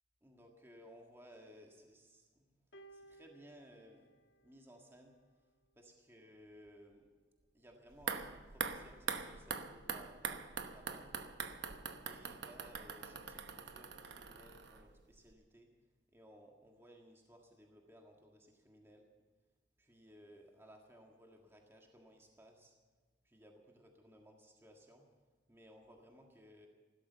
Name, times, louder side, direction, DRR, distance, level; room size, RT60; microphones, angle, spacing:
voice 1, 0.2-2.5 2.9-4.1 4.4-5.1 5.8-7.1 7.5-11.2 12.1-15.7 16.1-19.1 19.8-22.8 23.2-25.0 25.5-26.7, equal, 15° right, 1 dB, 1.7 m, -60 dB
sound 1, 2.7-5.2 6.2-6.4, right 2 dB, 65° left, 1.5 m, -61 dB
sound 2, 7.9-15.0 15.3-15.4, right 5 dB, 65° right, 1.0 m, -43 dB
16.0 x 13.0 x 6.8 m, 1.4 s
head